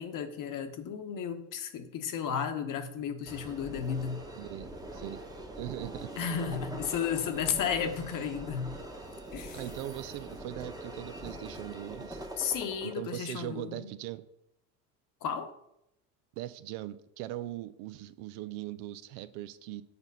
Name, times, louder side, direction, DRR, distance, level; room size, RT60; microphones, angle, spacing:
voice 1, 0.0-4.2 6.2-8.8 9.3-9.6 12.4-13.9 15.2-15.5, left 7 dB, 40° left, 8 dB, 1.1 m, -33 dB
sound 1, 3.3-12.9, right 1 dB, 10° right, 1.1 m, -43 dB
voice 2, 4.3-5.2 5.5-6.1 9.5-12.3 12.8-14.3 16.4-19.8, right 15 dB, 60° right, 13 dB, 0.6 m, -40 dB
7.0 x 4.2 x 5.4 m, 0.79 s
hypercardioid pair, 85°, 50 cm